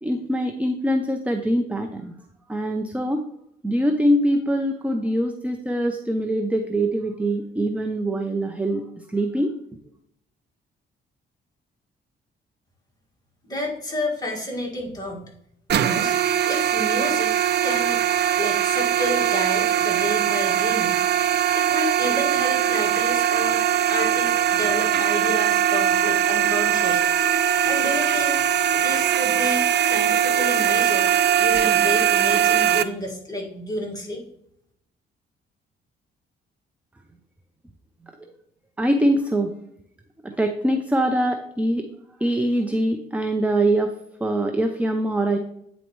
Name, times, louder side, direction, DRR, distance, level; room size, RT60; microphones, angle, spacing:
voice 1, 0.0-2.1 2.5-3.2 3.6-8.8 9.1-9.5 38.8-39.5 40.2-41.9 42.2-44.0 44.2-45.4, right 1 dB, 5° right, 5 dB, 0.5 m, -23 dB
voice 2, 13.4-15.3 15.7-16.1 16.5-17.4 17.6-18.0 18.4-21.0 21.5-27.1 27.6-28.4 28.8-31.1 31.4-34.2, left 1 dB, 20° left, -1 dB, 1.9 m, -30 dB
sound 1, 15.7-32.8, right 10 dB, 60° right, 0.5 m, -21 dB
9.1 x 4.1 x 3.1 m, 0.74 s
cardioid pair, 90°, 20 cm